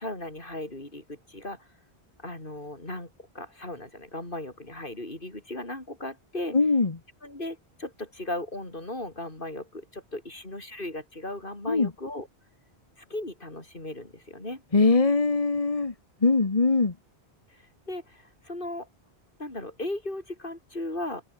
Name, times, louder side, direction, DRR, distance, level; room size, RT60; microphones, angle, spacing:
voice 1, 0.0-1.7 2.2-6.6 7.2-12.3 13.1-14.6 17.5-18.9 19.4-21.2, left 1 dB, 55° left, 5.4 m, -37 dB
voice 2, 6.5-7.0 11.7-11.9 14.7-15.9 16.2-16.9, left 3 dB, 35° left, 1.4 m, -22 dB
omnidirectional pair, 1.1 m